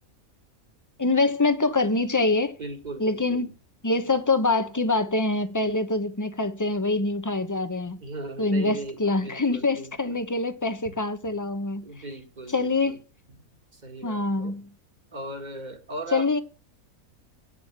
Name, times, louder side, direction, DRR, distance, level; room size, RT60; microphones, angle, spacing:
voice 1, 1.0-2.6 3.0-3.5 3.8-8.0 8.4-11.9 12.5-13.0 14.0-14.7 16.1-16.4, left 3 dB, 15° left, 0.9 m, -25 dB
voice 2, 2.6-3.5 8.0-10.2 11.8-13.0 13.3-13.4 13.7-14.5 15.1-16.3, right 2 dB, 30° right, 2.0 m, -38 dB
9.3 x 7.0 x 8.7 m
omnidirectional pair, 1.5 m